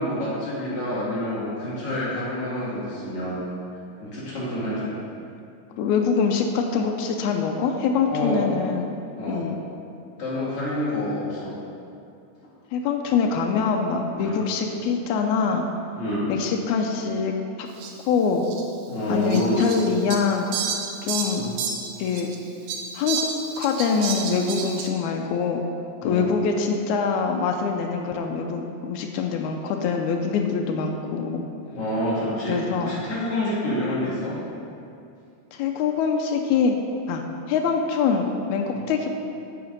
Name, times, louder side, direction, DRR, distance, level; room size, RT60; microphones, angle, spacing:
voice 1, 0.0-3.4 4.0-4.9 8.1-8.4 9.2-9.4 10.2-11.5 14.2-14.4 16.0-16.3 18.9-19.6 21.4-21.5 26.0-26.2 31.7-34.4 38.7-38.9, left 1 dB, 50° left, -9 dB, 3.1 m, -27 dB
voice 2, 5.8-8.9 9.3-9.6 12.7-15.7 16.3-17.7 18.1-18.5 19.1-20.5 21.0-21.4 22.0-22.3 22.9-23.2 23.6-25.6 26.0-31.4 32.5-32.9 33.8-33.9 35.5-36.8 37.1-37.2 37.5-39.1, left 5 dB, 90° left, 2 dB, 2.0 m, -24 dB
Fowl, 17.8-17.9 18.5-18.6 19.3-22.4 22.7-24.9, right 5 dB, 75° right, 2.1 m, -30 dB
9.5 x 5.0 x 5.2 m, 2.6 s
omnidirectional pair, 3.3 m